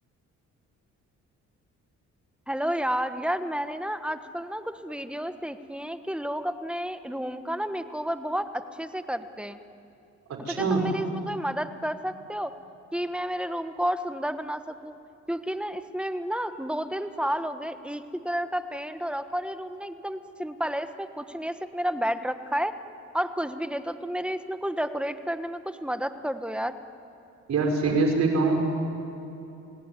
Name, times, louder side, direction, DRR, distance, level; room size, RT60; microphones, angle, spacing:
voice 1, 2.5-9.6 10.5-12.5 12.9-15.0 15.3-22.7 23.1-26.8, equal, 5° right, 9 dB, 1.3 m, -31 dB
voice 2, 10.3-10.9 27.5-28.6, right 3 dB, 60° right, 2 dB, 5.7 m, -24 dB
28.5 x 18.0 x 9.9 m, 2.9 s
cardioid pair, 90°, 30 cm